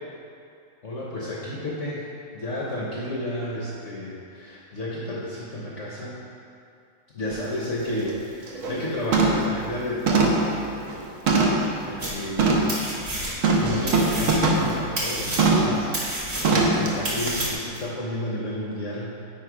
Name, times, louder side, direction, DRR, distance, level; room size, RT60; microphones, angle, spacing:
voice 1, 0.8-6.1 7.1-10.6 11.8-12.7 13.5-19.2, left 1 dB, 50° left, -5 dB, 1.0 m, -32 dB
sound 1, 7.3-7.4 7.9-8.1 8.5-8.8 9.1-9.5 10.1-11.7 12.4-12.7 13.4-14.7 15.4-15.8 16.4-16.9 17.3-17.4, right 3 dB, 55° right, 1.0 m, -21 dB
sound 2, 12.0-12.4 12.7-13.6 13.9-17.8, right 1 dB, 35° right, 1.5 m, -30 dB
9.1 x 3.6 x 4.9 m, 2.5 s
omnidirectional pair, 2.0 m